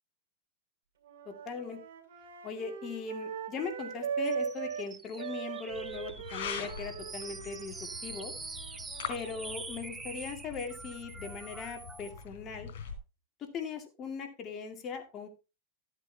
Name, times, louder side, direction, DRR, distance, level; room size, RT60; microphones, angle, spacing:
sound 1, 1.0-4.9 5.2-9.6, right 7 dB, 85° right, 3.0 m, -40 dB
voice 1, 1.3-1.8 2.4-7.7 8.0-8.3 9.1-12.7 13.4-15.3, left 5 dB, 25° left, 3 dB, 2.2 m, -39 dB
sound 2, 4.3-12.2, right 3 dB, 10° right, 0.7 m, -45 dB
sound 3, 5.7-13.0, left 6 dB, 70° left, 4.1 m, -44 dB
13.5 x 8.2 x 2.8 m, 0.28 s
supercardioid pair, 145°, 0 cm